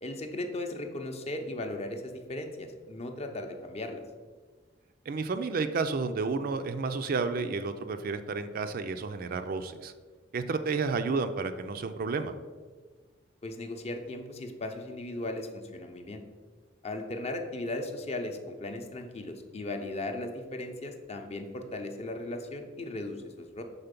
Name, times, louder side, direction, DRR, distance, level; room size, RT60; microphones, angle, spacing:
voice 1, 0.0-4.0 13.4-16.2 16.8-23.6, left 2 dB, 35° left, 5 dB, 0.6 m, -37 dB
voice 2, 5.1-9.9 10.3-12.3, right 4 dB, 50° right, 9 dB, 0.4 m, -31 dB
5.7 x 4.0 x 5.2 m, 1.4 s
head